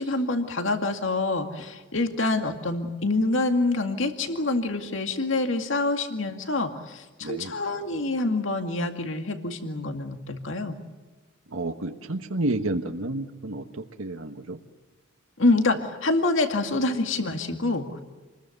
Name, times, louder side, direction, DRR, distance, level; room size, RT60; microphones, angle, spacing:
voice 1, 0.0-10.8 15.4-18.0, left 2 dB, 75° left, 6 dB, 2.1 m, -26 dB
voice 2, 11.5-13.6 14.0-14.6, right 2 dB, 85° right, 5 dB, 1.4 m, -30 dB
28.5 x 21.0 x 8.0 m, 1.2 s
head